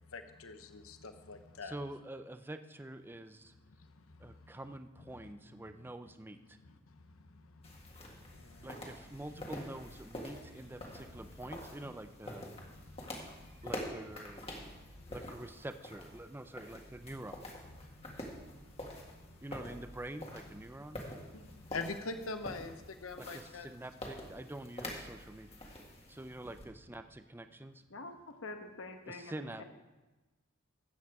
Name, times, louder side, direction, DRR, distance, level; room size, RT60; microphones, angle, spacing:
voice 1, 0.1-1.7 3.7-4.5 6.6-7.7 8.3-9.0 10.9-11.0 11.8-11.9 12.7-13.5 14.6-14.8 17.9-19.3 21.1-23.7, left 3 dB, 80° left, 8 dB, 0.8 m, -46 dB
voice 2, 1.6-3.5 4.2-6.6 8.6-12.4 13.6-14.4 15.1-17.5 19.4-21.0 23.2-25.6 26.1-27.8 29.1-29.6, right 1 dB, 10° right, 9 dB, 0.5 m, -46 dB
sound 1, 7.6-26.6, left 1 dB, 30° left, 1.8 m, -47 dB
voice 3, 27.9-29.6, left 2 dB, 65° left, 5 dB, 1.3 m, -46 dB
13.5 x 8.5 x 4.8 m, 1.1 s
head